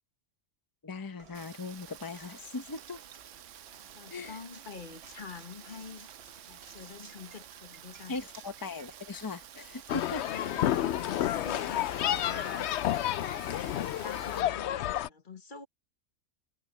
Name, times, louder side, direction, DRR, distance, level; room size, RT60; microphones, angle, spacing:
voice 1, 0.8-3.0 4.1-4.4 8.1-10.2, left 3 dB, 20° left, 0.9 m, -39 dB
Knock, 1.2-13.3, right 4 dB, 55° right, 1.8 m, -57 dB
Rain, 1.3-14.4, right 11 dB, 75° right, 1.0 m, -51 dB
voice 2, 3.7-6.1 6.5-8.2 10.2-12.7 13.4-15.7, left 5 dB, 40° left, 1.5 m, -46 dB
sound 1, 9.9-15.1, left 12 dB, 65° left, 0.8 m, -30 dB
omnidirectional pair, 1.3 m